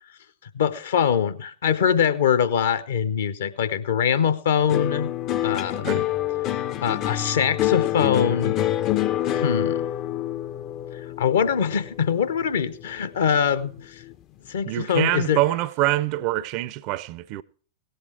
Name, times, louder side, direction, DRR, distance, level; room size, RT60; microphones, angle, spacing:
voice 1, 0.5-5.1 5.4-6.0 6.8-8.6 9.3-9.8 10.9-14.0 14.5-15.4, left 8 dB, 60° left, 0.9 m, -23 dB
sound 1, 4.7-13.2 13.5-14.1, left 12 dB, 35° left, 0.5 m, -26 dB
voice 2, 14.7-17.4, right 16 dB, 45° right, 0.5 m, -25 dB
17.5 x 7.9 x 4.7 m
figure-of-eight pair, 90°, 0 cm